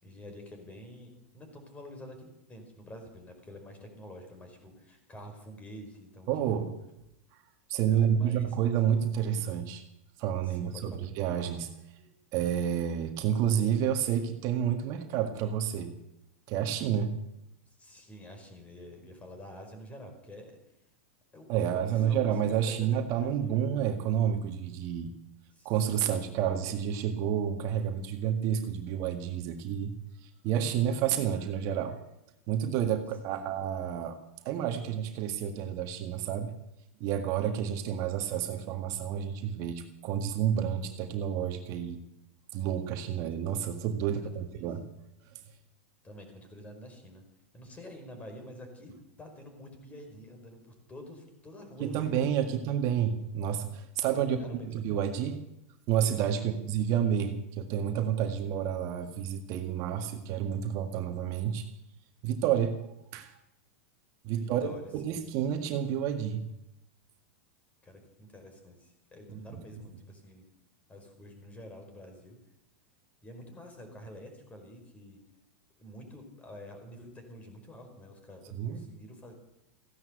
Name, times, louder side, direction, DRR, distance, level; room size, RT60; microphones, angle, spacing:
voice 1, 0.0-6.7 7.9-8.5 10.4-11.1 17.8-20.6 21.3-23.6 25.5-26.2 33.3-33.6 44.1-44.7 46.0-47.2 47.5-52.6 54.0-54.8 56.3-56.5 64.4-65.3 67.8-70.5 70.9-72.4 73.2-75.2 75.8-79.3, left 1 dB, 20° left, 5 dB, 5.1 m, -48 dB
voice 2, 6.3-6.7 7.7-9.8 10.2-11.7 12.3-15.9 16.5-17.2 21.5-25.1 25.6-29.9 30.2-32.0 32.5-34.2 34.4-36.5 37.0-42.0 42.5-44.9 51.8-54.4 54.6-55.4 55.9-61.7 62.2-62.8 63.1-63.3 64.2-66.4 78.5-78.9, right 9 dB, 50° right, 6 dB, 1.8 m, -30 dB
15.5 x 11.0 x 8.2 m, 0.86 s
hypercardioid pair, 115°, 7 cm